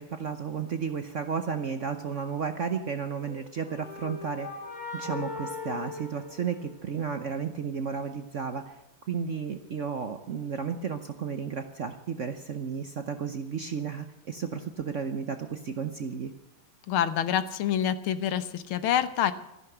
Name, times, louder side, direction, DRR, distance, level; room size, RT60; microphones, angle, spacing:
voice 1, 0.0-4.5 4.9-8.7 9.1-16.3, right 6 dB, 55° right, 8 dB, 0.9 m, -33 dB
sound 1, 3.2-7.1, left 4 dB, 60° left, 5.1 m, -39 dB
voice 2, 16.9-19.3, left 10 dB, 80° left, 13 dB, 1.8 m, -27 dB
14.0 x 11.0 x 7.9 m, 0.93 s
omnidirectional pair, 2.3 m